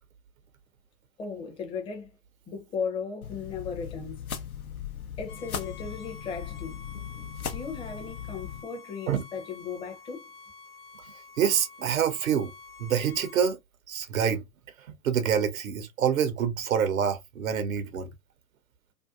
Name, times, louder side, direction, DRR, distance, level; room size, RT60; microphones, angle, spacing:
voice 1, 1.2-2.1 2.5-4.2 5.2-6.8 7.5-10.3, left 5 dB, 15° left, 0.5 m, -36 dB
sound 1, 3.2-8.6, left 8 dB, 85° left, 0.6 m, -38 dB
Bowed string instrument, 5.3-13.5, left 5 dB, 45° left, 0.7 m, -49 dB
voice 2, 11.4-12.5 12.8-13.6 13.9-14.4 15.0-18.1, right 8 dB, 70° right, 0.6 m, -26 dB
2.6 x 2.2 x 2.3 m
figure-of-eight pair, 90°, 42 cm